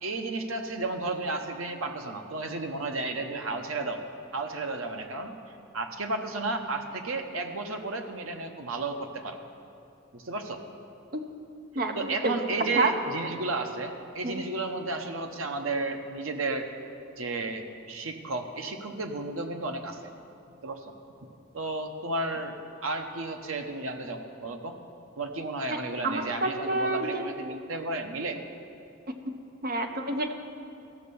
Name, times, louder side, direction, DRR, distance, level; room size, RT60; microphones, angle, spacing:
voice 1, 0.0-4.0 4.3-5.3 5.7-9.4 10.1-10.6 11.9-16.7 17.2-20.0 20.6-20.9 21.5-24.8 25.2-28.4, right 2 dB, 80° right, 5 dB, 0.9 m, -33 dB
voice 2, 11.7-12.3 12.8-12.9 14.2-14.4 26.0-27.2 29.3-29.4 29.6-30.3, right 2 dB, 45° right, 6 dB, 0.8 m, -28 dB
14.0 x 6.5 x 7.0 m, 2.6 s
head